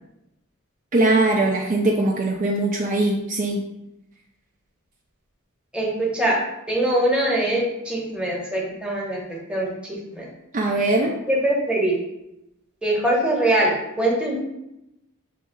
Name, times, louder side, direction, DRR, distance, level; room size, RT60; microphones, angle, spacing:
voice 1, 0.9-3.6 10.5-11.2, right 2 dB, 40° right, 0 dB, 0.4 m, -21 dB
voice 2, 5.7-6.4 6.7-9.2 9.5-10.2 11.3-12.0 12.8-14.4, right 1 dB, 5° right, -4 dB, 1.0 m, -22 dB
6.9 x 3.1 x 2.2 m, 0.87 s
head